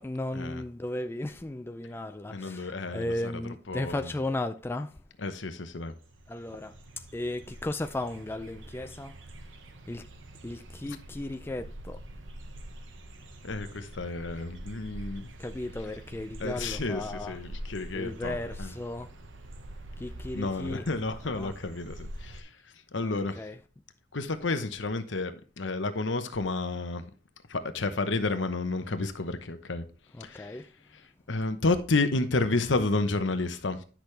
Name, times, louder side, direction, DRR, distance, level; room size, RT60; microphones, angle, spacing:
voice 1, 0.0-5.0 6.3-9.2 9.9-10.1 10.4-12.0 15.4-17.4 17.9-19.1 20.0-20.8 21.2-21.5 23.0-23.6 30.1-30.7, left 1 dB, 10° left, 0.3 m, -35 dB
voice 2, 2.3-3.3 3.7-4.0 5.2-5.9 13.4-15.3 16.4-18.7 20.3-22.5 22.9-23.3 24.1-27.1 27.5-29.9 30.2-30.6 31.3-33.8, left 3 dB, 70° left, 1.0 m, -31 dB
sound 1, 5.9-22.4, right 1 dB, 75° right, 1.0 m, -45 dB
10.0 x 6.1 x 3.3 m
head